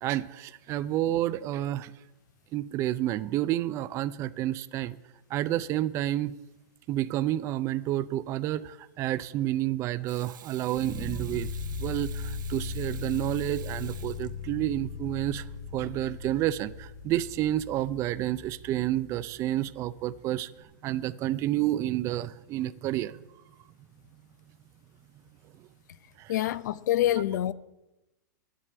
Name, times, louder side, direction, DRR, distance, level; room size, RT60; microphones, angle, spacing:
voice 1, 0.0-1.9 2.5-5.0 5.3-6.4 6.9-15.5 15.7-23.2 26.2-26.4, right 14 dB, 30° right, 0.4 m, -30 dB
Water tap faucet / Sink (filling or washing), 10.1-14.8 17.2-17.4, right 10 dB, 80° right, 0.7 m, -50 dB
sound 1, 10.7-19.8, left 4 dB, 10° left, 1.2 m, -38 dB
voice 2, 26.3-27.5, left 13 dB, 65° left, 0.6 m, -26 dB
9.8 x 7.5 x 7.6 m
hypercardioid pair, 135°, 10 cm